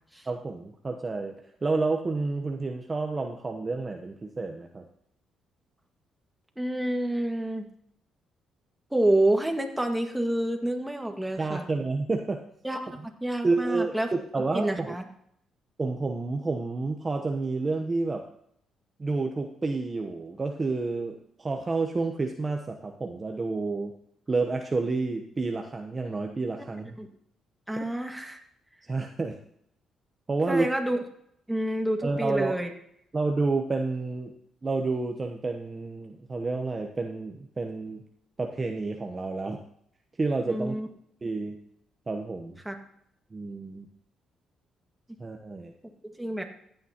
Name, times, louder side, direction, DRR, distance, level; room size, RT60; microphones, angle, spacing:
voice 1, 0.3-1.3 1.6-4.9 11.4-12.4 13.4-15.0 15.8-18.2 19.0-23.9 24.3-27.0 27.8-27.9 28.9-29.4 30.3-30.7 32.0-32.6 33.1-34.3 34.6-38.0 38.4-39.6 40.2-40.7 41.2-41.6 42.1-42.6 43.3-43.9 45.2-45.7, right 3 dB, 30° right, 3 dB, 1.0 m, -29 dB
voice 2, 6.6-7.7 8.9-11.6 12.6-12.9 13.2-14.1 14.5-15.0 27.0-27.1 27.7-28.4 30.5-31.0 31.5-32.7 40.5-40.9 42.7-42.8 46.0-46.4, right 1 dB, 5° right, 3 dB, 1.9 m, -28 dB
15.5 x 9.0 x 3.0 m, 0.68 s
cardioid pair, 90°, 0 cm